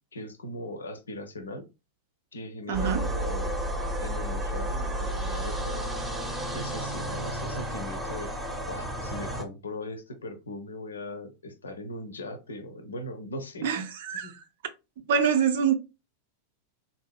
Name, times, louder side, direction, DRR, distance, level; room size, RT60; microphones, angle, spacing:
voice 1, 0.1-1.7 2.3-3.6 4.0-6.0 6.5-13.7 14.1-14.3, left 1 dB, 70° left, 0.5 m, -39 dB
sound 1, 2.7-9.4, right 1 dB, 15° right, 0.7 m, -32 dB
voice 2, 2.7-3.0 13.6-14.3 15.1-15.7, right 7 dB, 55° right, 0.5 m, -25 dB
3.6 x 2.6 x 2.2 m
figure-of-eight pair, 90°, 0 cm